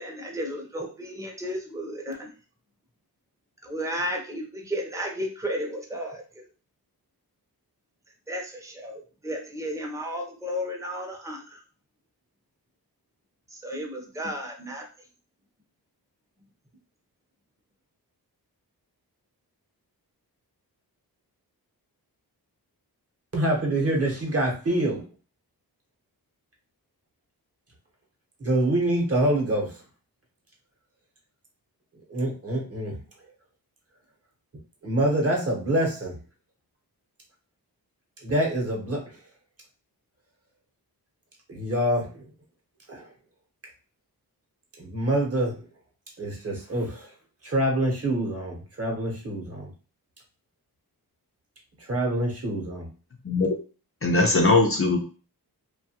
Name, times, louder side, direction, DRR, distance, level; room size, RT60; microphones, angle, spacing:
voice 1, 0.0-2.3 3.6-6.4 8.3-11.6 13.5-14.8, equal, 10° right, 0 dB, 0.6 m, -33 dB
voice 2, 23.3-25.0 28.4-29.7 32.1-32.9 34.8-36.2 38.2-39.2 41.5-42.2 42.9-43.1 44.8-45.6 46.2-47.1 47.4-49.7 51.8-52.9, right 1 dB, 40° right, 0 dB, 0.9 m, -26 dB
voice 3, 54.0-55.0, left 3 dB, 35° left, 2 dB, 0.5 m, -20 dB
2.7 x 2.3 x 2.8 m, 0.36 s
wide cardioid pair, 110°, 38 cm